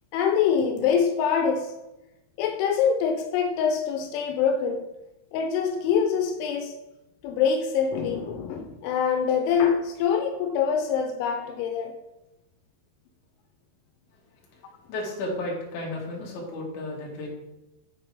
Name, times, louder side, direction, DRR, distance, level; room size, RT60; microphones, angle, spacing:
voice 1, 0.1-1.7 2.4-4.8 5.3-6.7 7.2-11.9, left 7 dB, 85° left, 5 dB, 3.2 m, -24 dB
voice 2, 14.5-17.3, left 1 dB, 50° left, -3 dB, 2.9 m, -33 dB
9.4 x 4.6 x 5.1 m, 0.96 s
omnidirectional pair, 5.4 m